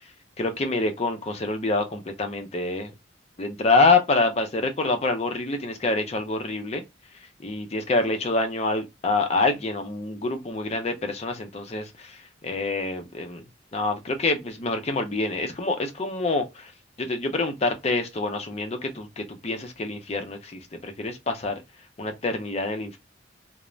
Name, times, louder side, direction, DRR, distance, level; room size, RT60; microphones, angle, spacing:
voice 1, 0.4-2.9 3.4-6.8 7.4-13.4 13.7-16.7 17.0-21.6 22.0-23.0, left 3 dB, 35° left, 0.5 m, -26 dB
2.4 x 2.0 x 3.0 m
head